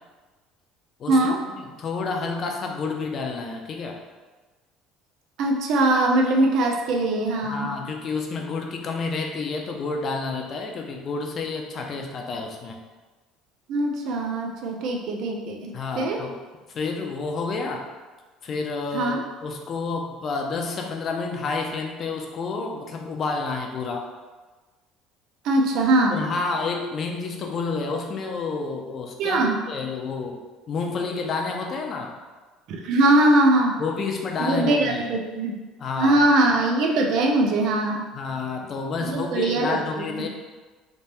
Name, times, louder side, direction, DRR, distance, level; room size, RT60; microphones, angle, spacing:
voice 1, 1.1-1.4 5.4-7.7 13.7-16.2 18.9-19.2 25.4-26.2 29.2-29.6 32.7-33.8 34.4-35.6 36.0-38.1 39.1-40.3, right 2 dB, 60° right, 1 dB, 0.5 m, -21 dB
voice 2, 1.6-4.0 7.4-12.8 15.7-16.4 16.7-17.9 18.4-24.1 26.1-30.4 30.7-32.1 33.8-35.1 35.8-36.3 38.1-40.3, left 4 dB, 40° left, 2 dB, 0.6 m, -29 dB
3.5 x 2.9 x 4.3 m, 1.3 s
cardioid pair, 135°, 0 cm